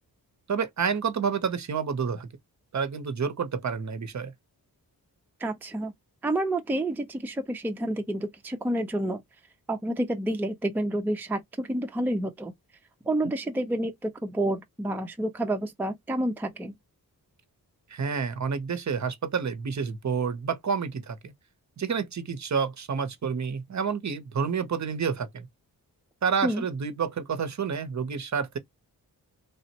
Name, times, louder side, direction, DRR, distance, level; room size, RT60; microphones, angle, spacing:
voice 1, 0.5-2.3 2.7-4.3 13.2-13.3 17.9-21.3 21.8-25.5 26.2-28.6, right 6 dB, 50° right, 0.6 m, -29 dB
voice 2, 5.4-5.9 6.2-9.2 9.7-12.5 13.1-16.7 26.4-26.6, right 1 dB, 5° right, 0.4 m, -29 dB
3.4 x 2.0 x 2.7 m
wide cardioid pair, 100°, 38 cm